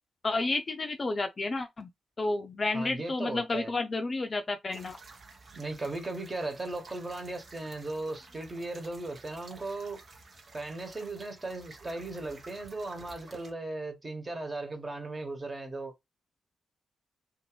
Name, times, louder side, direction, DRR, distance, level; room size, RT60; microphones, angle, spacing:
voice 1, 0.2-1.9 2.2-5.0, left 3 dB, 40° left, 0.4 m, -31 dB
voice 2, 2.7-3.7 5.5-10.0 10.5-15.9, right 2 dB, 30° right, 1.2 m, -37 dB
sound 1, 4.7-13.5, right 3 dB, 55° right, 0.8 m, -52 dB
2.6 x 2.5 x 3.0 m
hypercardioid pair, 45°, 0 cm